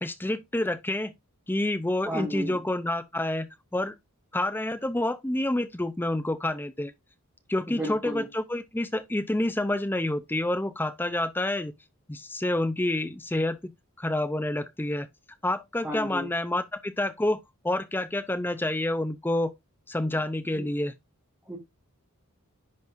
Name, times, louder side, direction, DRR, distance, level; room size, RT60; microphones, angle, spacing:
voice 1, 0.0-1.1 1.5-3.9 4.3-6.9 7.5-11.7 12.1-13.7 14.0-15.1 15.4-17.4 17.6-19.5 19.9-20.9, left 1 dB, 10° left, 0.5 m, -28 dB
voice 2, 2.0-2.6 7.7-8.3 15.8-16.3 20.5-20.7 21.4-21.6, equal, 10° right, 1.7 m, -33 dB
10.5 x 4.0 x 2.6 m
head